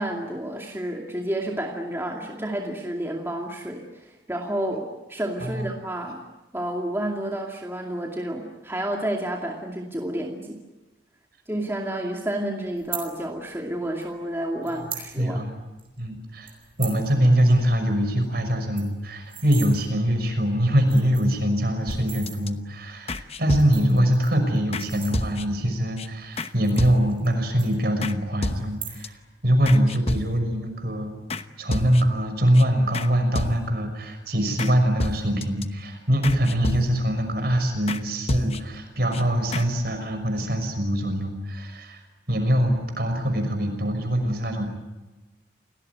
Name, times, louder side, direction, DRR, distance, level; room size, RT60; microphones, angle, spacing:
voice 1, 0.0-6.2 6.5-10.6 11.5-15.4, right 1 dB, 15° right, 0 dB, 2.4 m, -30 dB
sound 1, 12.8-13.1 14.0-14.1 14.6-15.1 15.4-15.5 15.8-16.0 16.5-17.0 17.4-17.5 17.8-17.9 18.2-18.3 18.6-19.7 20.4-20.5 20.8-21.4 21.9-22.4 23.4-25.6 26.2-27.3 27.6-28.2 28.6-29.2 29.5-29.9, right 8 dB, 30° right, 5.2 m, -38 dB
voice 2, 15.2-15.5 16.0-16.5 16.8-31.1 31.6-42.0 42.3-44.7, equal, 55° right, 6 dB, 5.9 m, -23 dB
sound 2, 21.9-22.5 23.1-24.0 24.7-24.9 25.1-25.7 26.0-26.1 26.4-26.5 26.8-27.3 28.0-28.2 28.4-29.1 29.7-30.6 31.3-31.4 31.7-32.2 32.5-32.6 32.9-33.1 33.4-33.9 34.6-34.7 35.0-35.6 36.2-37.2 37.9-38.0 38.3-38.8 39.1-39.2 39.5-39.7, left 2 dB, 35° left, 1.0 m, -30 dB
29.0 x 19.5 x 9.4 m, 1.1 s
head